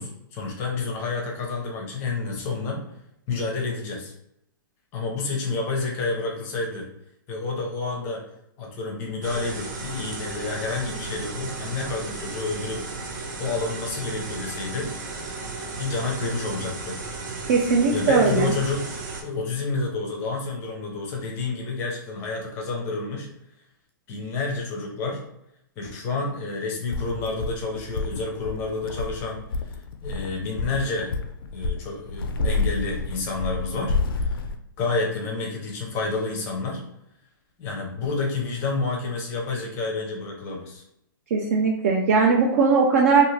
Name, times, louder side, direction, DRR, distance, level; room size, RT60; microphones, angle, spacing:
voice 1, 0.0-2.9 3.3-4.1 4.9-6.9 7.3-8.2 8.6-12.9 13.4-14.9 15.8-17.0 17.9-23.3 24.1-25.2 25.8-29.4 30.0-31.1 31.5-34.4 34.8-36.8 37.6-40.8, left 3 dB, 20° left, 0 dB, 0.6 m, -29 dB
sound 1, 9.2-19.2, right 3 dB, 60° right, 0.8 m, -34 dB
voice 2, 17.5-18.5 41.3-43.2, right 4 dB, 40° right, -1 dB, 0.4 m, -19 dB
sound 2, 26.9-34.6, left 3 dB, 75° left, 0.4 m, -29 dB
2.6 x 2.4 x 3.1 m, 0.80 s
hypercardioid pair, 165°, 12 cm